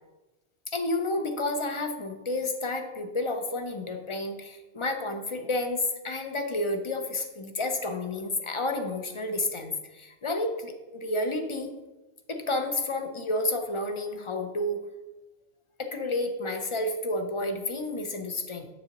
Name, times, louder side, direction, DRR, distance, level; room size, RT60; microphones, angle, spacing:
voice 1, 0.7-11.8 12.3-14.8 15.8-18.7, left 2 dB, 35° left, 6 dB, 0.6 m, -30 dB
7.8 x 7.0 x 2.9 m, 1.1 s
omnidirectional pair, 1.1 m